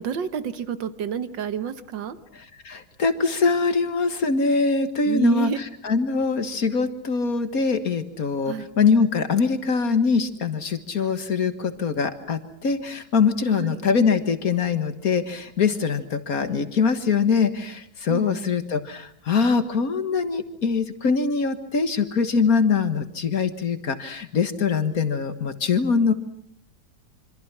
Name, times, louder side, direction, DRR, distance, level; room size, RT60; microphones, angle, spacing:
voice 1, 0.0-2.2 5.1-5.6 8.5-8.7 13.5-13.9 18.1-18.6, right 8 dB, 70° right, 11 dB, 1.9 m, -29 dB
voice 2, 2.7-5.5 5.8-26.1, left 5 dB, 50° left, 9 dB, 1.8 m, -23 dB
26.5 x 26.0 x 6.1 m, 0.64 s
omnidirectional pair, 2.1 m